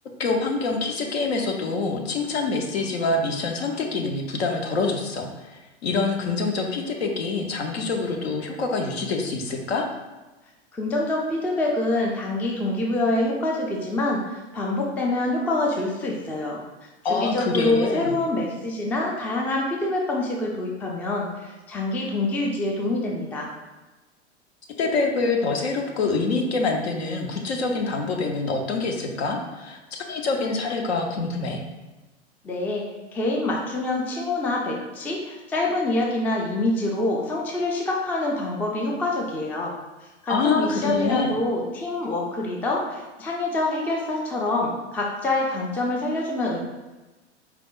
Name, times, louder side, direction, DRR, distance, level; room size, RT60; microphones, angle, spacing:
voice 1, 0.2-9.9 17.0-18.2 24.8-31.6 40.3-41.3, left 3 dB, 65° left, 2 dB, 0.8 m, -26 dB
voice 2, 10.7-16.6 17.1-23.5 32.4-32.9 33.1-39.7 40.0-46.6, left 2 dB, 5° left, -2 dB, 0.3 m, -26 dB
4.7 x 3.4 x 2.4 m, 1.1 s
figure-of-eight pair, 90°, 34 cm